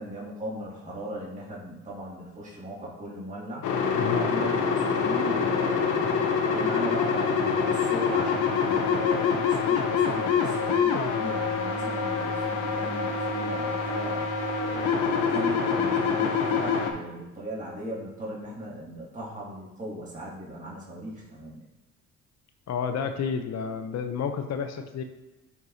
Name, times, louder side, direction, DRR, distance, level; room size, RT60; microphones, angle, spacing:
voice 1, 0.0-3.6 4.1-6.2 6.5-14.3 14.6-21.6, right 1 dB, 25° right, -7 dB, 2.3 m, -38 dB
sound 1, 3.6-16.9, left 5 dB, 90° left, 0.9 m, -25 dB
voice 2, 3.9-4.3 22.7-25.0, left 6 dB, 60° left, 7 dB, 0.7 m, -30 dB
11.0 x 4.7 x 2.7 m, 1.0 s
cardioid pair, 90°, 30 cm